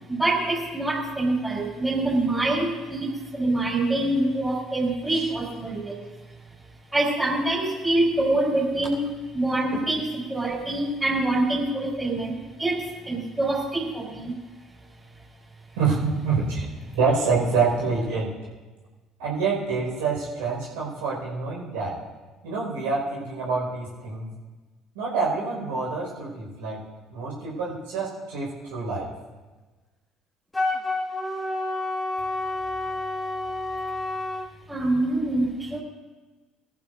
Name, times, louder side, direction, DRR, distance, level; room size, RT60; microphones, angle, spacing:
voice 1, 0.1-6.0 6.9-9.0 9.3-14.3 34.7-35.8, right 2 dB, 10° right, -1 dB, 5.5 m, -25 dB
voice 2, 15.8-16.7 16.9-18.3 19.2-21.9 22.4-24.3 24.9-26.8 27.1-29.1, right 4 dB, 75° right, -4 dB, 5.7 m, -26 dB
Wind instrument woodwind instrument, 30.5-34.5, left 2 dB, 15° left, 2.2 m, -29 dB
23.0 x 14.5 x 2.8 m, 1.3 s
hypercardioid pair, 60°, 0 cm